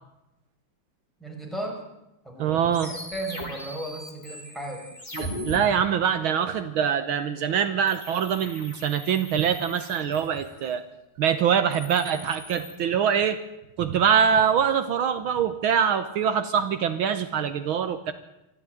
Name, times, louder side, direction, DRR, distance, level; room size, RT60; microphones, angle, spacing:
voice 1, 1.2-1.8 2.2-4.8, right 1 dB, ahead, -1 dB, 5.8 m, -35 dB
voice 2, 2.4-2.9 5.1-10.8 11.2-13.4 13.8-18.1, right 8 dB, 75° right, 10 dB, 1.8 m, -24 dB
sound 1, 2.7-5.6 7.9-10.7 11.5-12.7, left 1 dB, 20° left, 3.3 m, -39 dB
24.5 x 13.5 x 9.2 m, 0.95 s
omnidirectional pair, 2.4 m